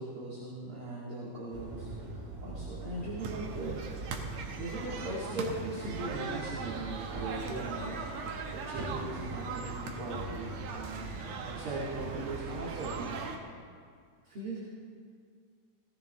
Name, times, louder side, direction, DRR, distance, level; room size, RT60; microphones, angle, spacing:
voice 1, 0.0-3.9 4.6-8.0 8.5-13.2 14.2-14.6, right 2 dB, 45° right, -6 dB, 2.7 m, -39 dB
sound 1, 1.5-13.2, right 3 dB, 80° right, 3.6 m, -42 dB
sound 2, 3.2-13.4, right 4 dB, 65° right, 2.1 m, -40 dB
17.5 x 15.5 x 3.4 m, 2.1 s
omnidirectional pair, 3.7 m